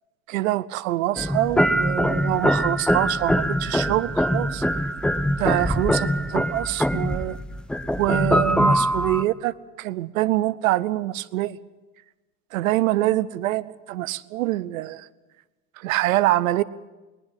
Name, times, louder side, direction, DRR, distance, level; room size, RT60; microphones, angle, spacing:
voice 1, 0.3-4.9 5.4-7.4 8.0-11.6 12.5-15.1 15.8-16.6, right 16 dB, 65° right, 18 dB, 0.9 m, -25 dB
sound 1, 1.2-9.2, equal, ahead, 0.7 m, -23 dB
20.0 x 19.0 x 7.5 m, 1.2 s
figure-of-eight pair, 80°, 44 cm